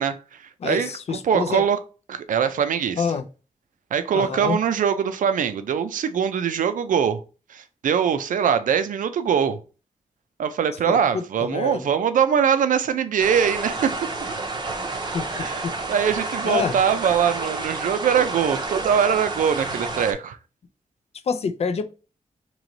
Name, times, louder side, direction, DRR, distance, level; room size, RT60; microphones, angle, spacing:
voice 1, 0.0-1.8 2.1-3.1 3.9-7.2 7.5-9.6 10.4-14.1 15.4-20.4, right 7 dB, 85° right, 0.5 m, -22 dB
voice 2, 0.6-1.7 3.0-3.2 4.1-4.6 10.9-11.9 15.1-15.7 16.4-16.7 21.3-21.8, left 6 dB, 50° left, 0.4 m, -27 dB
sound 1, 13.2-20.1, right 3 dB, 35° right, 0.6 m, -30 dB
3.1 x 3.0 x 3.8 m
wide cardioid pair, 180°, 13 cm